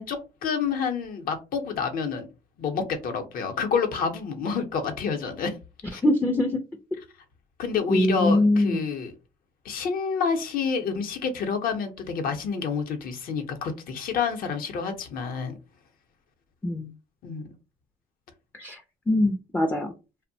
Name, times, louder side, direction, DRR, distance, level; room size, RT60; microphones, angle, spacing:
voice 1, 0.0-2.3 2.6-5.6 5.9-6.0 7.6-9.1 9.6-15.6 17.2-17.4, left 5 dB, 60° left, 0.7 m, -28 dB
voice 2, 6.0-6.6 7.9-8.8 16.6-16.9 18.6-18.8 19.1-19.9, left 1 dB, 10° left, 0.4 m, -22 dB
2.6 x 2.0 x 2.6 m
cardioid pair, 110°, 17 cm